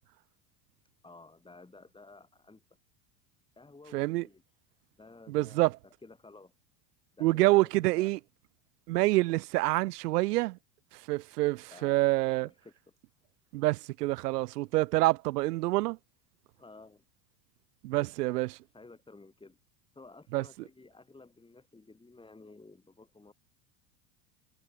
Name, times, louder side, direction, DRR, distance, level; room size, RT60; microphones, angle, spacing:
voice 1, 1.0-2.6 3.6-4.4 4.9-6.5 7.1-8.2 11.7-12.1 12.4-13.0 16.6-17.0 18.0-18.1 18.7-19.6 19.9-23.3, left 3 dB, 10° left, 7.4 m, -54 dB
voice 2, 3.9-4.2 5.3-5.7 7.2-8.2 8.9-10.6 11.1-12.5 13.5-16.0 17.8-18.5 20.3-20.4, right 19 dB, 85° right, 0.8 m, -27 dB
supercardioid pair, 110°, 46 cm